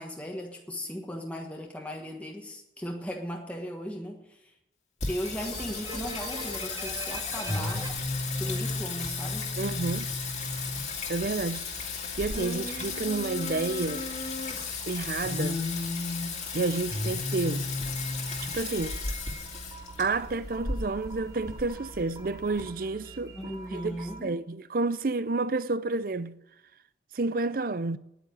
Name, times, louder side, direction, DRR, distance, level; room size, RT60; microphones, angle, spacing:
voice 1, 0.0-4.5 5.1-7.9 8.4-9.5 23.3-24.4, equal, 10° left, 1.3 m, -37 dB
Singing, 5.0-22.6, left 3 dB, 40° left, 2.1 m, -33 dB
sound 1, 5.2-24.2, right 3 dB, 20° right, 1.3 m, -45 dB
voice 2, 9.6-10.1 11.1-11.7 12.2-14.0 14.9-15.6 16.5-17.7 18.4-19.0 20.0-26.4 27.1-28.0, right 3 dB, 50° right, 0.5 m, -30 dB
9.9 x 8.8 x 9.9 m
head